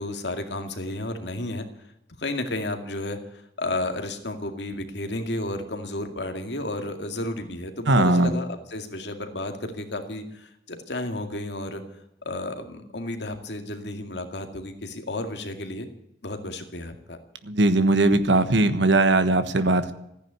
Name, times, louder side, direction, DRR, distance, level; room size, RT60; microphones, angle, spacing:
voice 1, 0.0-1.7 2.2-11.8 12.2-15.9 16.2-17.2, left 2 dB, 75° left, 6 dB, 2.2 m, -32 dB
voice 2, 7.9-8.3 17.4-19.9, right 2 dB, 85° right, 11 dB, 1.3 m, -19 dB
15.0 x 10.0 x 9.5 m, 0.81 s
head